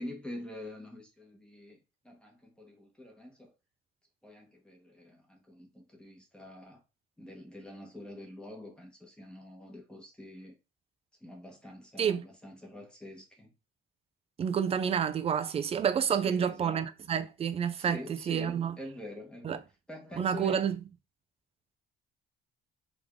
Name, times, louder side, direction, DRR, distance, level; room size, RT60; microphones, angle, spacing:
voice 1, 0.0-3.5 4.2-6.8 7.2-10.5 11.2-13.5 16.0-16.9 17.8-19.6 19.9-20.6, left 1 dB, 5° left, 1.1 m, -46 dB
voice 2, 14.4-18.7 19.4-19.6 20.2-20.8, right 8 dB, 30° right, 0.4 m, -29 dB
3.5 x 3.5 x 3.5 m
cardioid pair, 155°, 21 cm